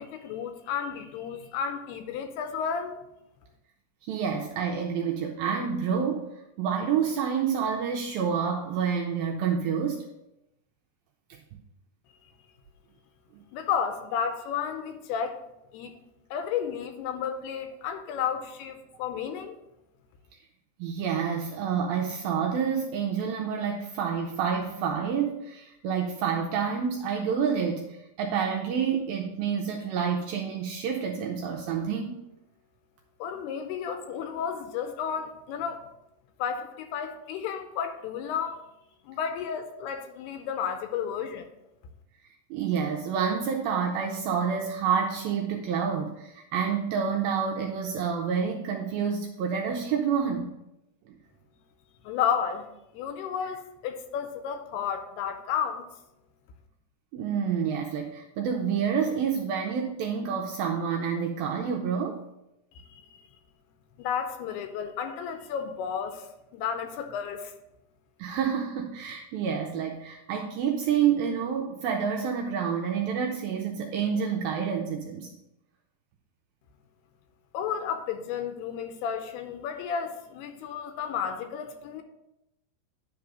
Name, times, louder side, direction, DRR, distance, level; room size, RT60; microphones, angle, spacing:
voice 1, 0.0-3.0 13.5-15.4 15.7-15.9 16.3-19.6 33.2-35.9 36.4-38.6 39.1-41.5 52.0-52.7 52.9-55.9 62.8-63.0 64.0-66.3 66.5-67.5 77.5-82.0, left 7 dB, 80° left, 2.6 m, -32 dB
voice 2, 4.0-6.3 6.6-10.0 13.3-13.4 20.8-32.2 42.5-50.6 51.1-51.2 57.1-62.3 68.2-75.3, right 7 dB, 85° right, 2.1 m, -28 dB
10.5 x 3.6 x 6.1 m
omnidirectional pair, 4.9 m